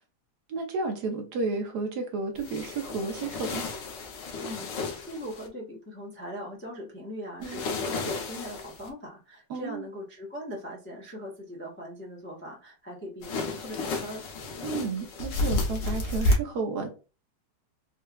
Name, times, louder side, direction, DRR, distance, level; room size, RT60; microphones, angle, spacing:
voice 1, 0.5-3.6 7.4-7.6 9.5-9.8 14.6-16.9, right 4 dB, 70° right, 1.2 m, -32 dB
sound 1, 2.4-5.5 7.4-8.9 13.2-16.3, left 2 dB, 90° left, 1.5 m, -31 dB
voice 2, 4.4-14.2, equal, 10° left, 0.7 m, -40 dB
4.3 x 2.3 x 2.2 m
omnidirectional pair, 1.9 m